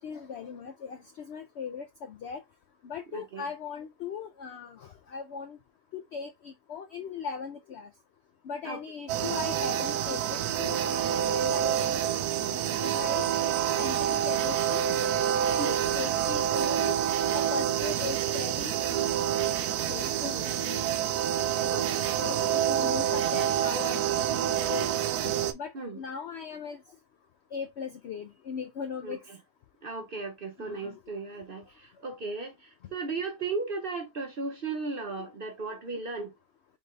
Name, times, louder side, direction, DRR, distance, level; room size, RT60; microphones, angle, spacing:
voice 1, 0.0-2.4 2.8-5.6 5.9-7.9 8.4-12.0 12.4-13.4 13.8-14.9 15.4-16.9 17.3-19.2 19.9-21.0 21.5-24.9 25.5-26.8 27.5-29.2 30.6-31.0, left 6 dB, 75° left, 0.6 m, -39 dB
voice 2, 3.1-3.4 8.6-8.8 15.6-15.8 20.2-20.5 21.6-22.1 25.7-26.0 29.0-29.2 29.8-36.3, right 3 dB, 50° right, 0.7 m, -36 dB
sound 1, 9.1-25.5, right 10 dB, 75° right, 1.1 m, -27 dB
3.9 x 3.7 x 3.1 m
omnidirectional pair, 1.7 m